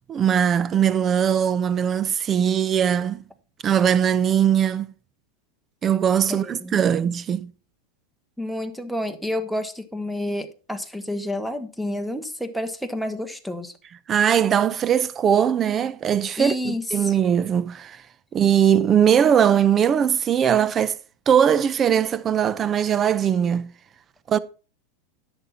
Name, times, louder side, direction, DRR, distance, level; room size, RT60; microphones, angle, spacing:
voice 1, 0.1-3.2 3.6-4.9 5.8-7.5 14.1-18.0 18.3-21.0 21.3-23.7 24.3-24.4, right 8 dB, 30° right, 0.7 m, -20 dB
voice 2, 6.4-7.0 8.4-13.7 16.4-17.1, left 1 dB, ahead, 1.1 m, -29 dB
10.5 x 7.2 x 4.2 m
supercardioid pair, 125°, 0 cm